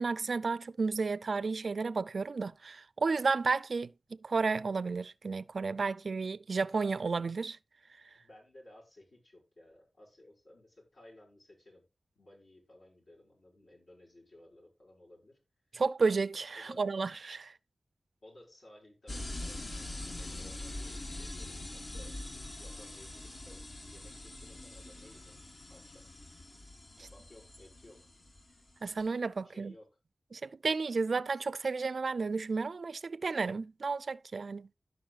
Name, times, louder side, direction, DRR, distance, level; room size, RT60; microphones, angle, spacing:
voice 1, 0.0-3.9 4.2-7.6 15.7-17.5 28.8-29.7 30.3-34.7, right 4 dB, 65° right, 0.4 m, -32 dB
voice 2, 8.1-11.8 12.2-15.4 16.6-16.9 18.2-22.2 22.5-23.6 23.9-25.4 25.7-26.1 27.0-28.0 29.4-29.9, left 1 dB, 70° left, 5.4 m, -57 dB
sound 1, 19.1-29.0, left 1 dB, 50° left, 1.4 m, -44 dB
16.0 x 5.5 x 2.4 m
wide cardioid pair, 85°, 0 cm